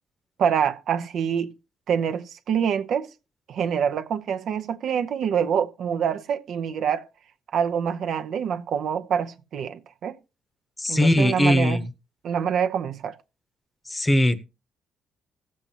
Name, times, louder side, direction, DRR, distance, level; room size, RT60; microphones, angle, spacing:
voice 1, 0.4-1.5 1.9-3.1 3.5-7.1 7.5-10.2 10.9-11.8 12.2-13.2, right 7 dB, 65° right, 0.8 m, -26 dB
voice 2, 10.8-11.8 13.9-14.4, left 1 dB, 15° left, 0.9 m, -20 dB
18.0 x 7.5 x 2.8 m
cardioid pair, 105°, 0 cm